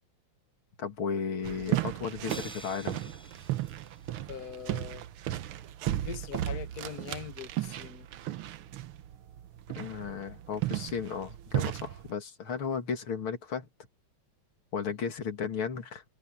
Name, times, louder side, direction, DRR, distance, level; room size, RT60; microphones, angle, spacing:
voice 1, 0.8-3.0 9.8-13.7 14.7-16.0, left 6 dB, 90° left, 3.0 m, -34 dB
sound 1, 1.4-12.1, right 13 dB, 90° right, 1.7 m, -35 dB
Crash cymbal, 2.3-4.3, equal, ahead, 6.0 m, -48 dB
voice 2, 4.3-5.0 6.0-8.1, left 8 dB, 50° left, 1.9 m, -42 dB
omnidirectional pair, 2.2 m